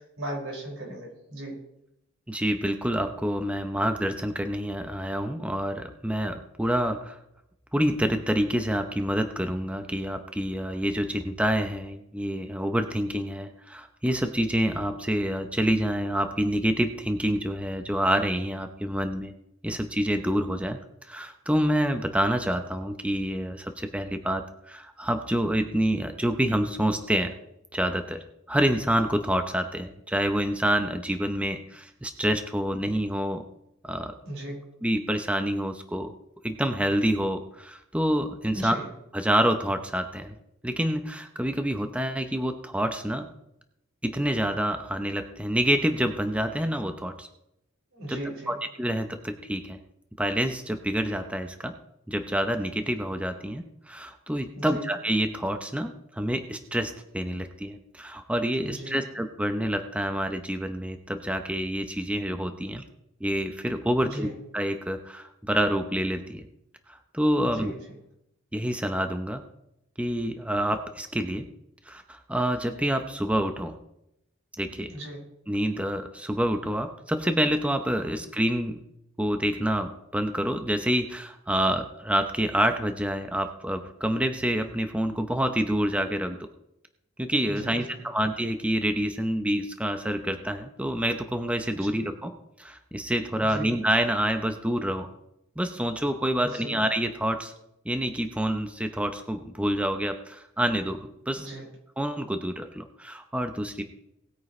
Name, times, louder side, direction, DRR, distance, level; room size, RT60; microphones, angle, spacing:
voice 1, 0.0-1.6 34.2-34.6 38.5-38.9 47.9-48.5 54.5-54.8 58.6-59.0 64.0-64.3 67.4-68.0 74.9-75.2 87.4-88.0 91.7-91.9 93.4-93.7 96.4-96.7 101.3-101.7, right 1 dB, 90° right, -2 dB, 5.7 m, -37 dB
voice 2, 2.3-7.2 7.7-19.3 19.6-27.3 27.7-33.4 33.8-34.1 34.8-36.1 36.4-38.8 39.1-40.4 40.6-43.3 44.0-47.3 48.1-48.2 48.5-49.8 50.2-51.7 52.1-62.8 63.2-66.4 66.9-67.7 68.5-69.4 70.0-71.4 71.9-73.8 74.6-74.9 75.5-78.8 79.2-86.4 87.2-92.3 92.6-95.1 95.6-97.5 97.8-101.5 102.0-103.8, equal, 5° right, 6 dB, 0.8 m, -27 dB
19.0 x 9.4 x 3.2 m, 0.82 s
head